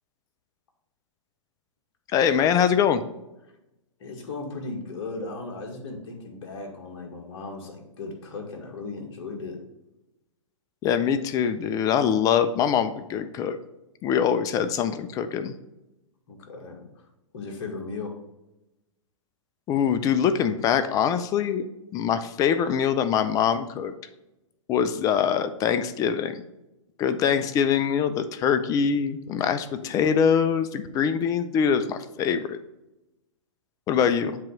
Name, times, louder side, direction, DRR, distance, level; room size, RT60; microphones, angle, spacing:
voice 1, 2.1-3.0 10.8-13.6 14.0-15.5 19.7-23.9 24.7-26.4 27.0-32.6 33.9-34.4, left 7 dB, 20° left, 11 dB, 0.4 m, -23 dB
voice 2, 4.0-9.6 16.3-16.9 17.3-18.1 29.8-30.1 33.9-34.1, left 3 dB, 50° left, 1 dB, 1.9 m, -36 dB
7.5 x 3.0 x 5.8 m, 0.93 s
hypercardioid pair, 125°, 16 cm